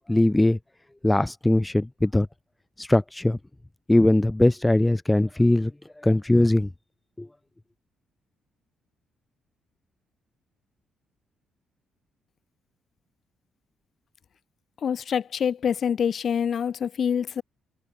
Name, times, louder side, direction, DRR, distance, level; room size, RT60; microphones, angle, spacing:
voice 1, 0.1-0.6 1.0-2.3 2.8-3.4 3.9-5.7 6.0-6.7 7.2-7.3, left 1 dB, 10° left, 0.4 m, -20 dB
voice 2, 14.8-17.4, left 7 dB, 55° left, 0.9 m, -26 dB
cardioid pair, 90°, 0 cm